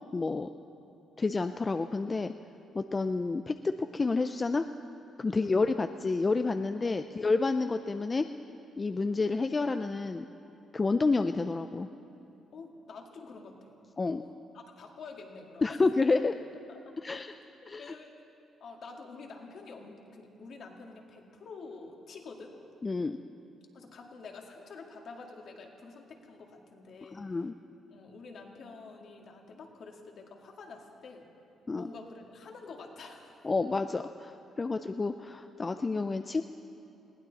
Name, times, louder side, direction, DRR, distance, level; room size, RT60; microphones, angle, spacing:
voice 1, 0.1-0.5 1.2-2.3 2.7-4.7 5.2-8.3 8.8-10.3 10.7-11.9 14.0-14.2 15.6-16.4 17.0-17.3 17.7-17.9 22.8-23.2 27.1-27.5 31.7-31.9 33.4-36.4, left 3 dB, 30° left, 8 dB, 0.4 m, -29 dB
voice 2, 6.8-7.3 12.5-13.7 14.2-15.8 16.7-16.9 17.6-18.1 18.6-22.6 23.7-27.2 27.9-31.3 31.8-33.4, left 4 dB, 60° left, 1 dB, 2.0 m, -48 dB
21.0 x 16.5 x 4.1 m, 2.9 s
cardioid pair, 90°, 0 cm